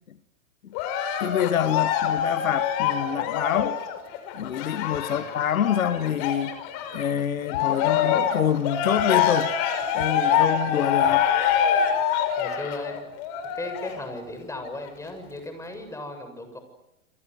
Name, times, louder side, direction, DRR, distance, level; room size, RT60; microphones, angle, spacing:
Cheering, 0.8-7.1 7.5-14.0 14.7-14.8, left 8 dB, 40° left, 5.9 m, -25 dB
voice 1, 1.2-3.8 4.3-6.5 6.9-9.5 9.9-11.3, left 9 dB, 80° left, 1.5 m, -26 dB
voice 2, 12.4-13.0 13.5-16.6, left 2 dB, 5° left, 7.4 m, -36 dB
27.0 x 26.5 x 8.0 m
hypercardioid pair, 120°, 41 cm